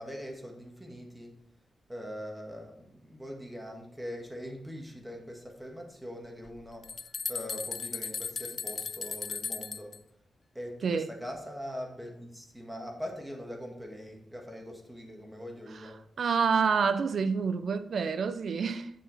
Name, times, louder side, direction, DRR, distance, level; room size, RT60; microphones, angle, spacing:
voice 1, 0.0-1.4 1.9-6.9 7.3-10.0 10.5-16.0, equal, 5° right, 1.6 m, -42 dB
sound 1, 6.5-6.6 6.8-10.0, left 5 dB, 45° left, 0.4 m, -36 dB
voice 2, 16.2-18.9, right 5 dB, 60° right, 0.6 m, -27 dB
8.3 x 7.4 x 4.1 m
wide cardioid pair, 145°, 0 cm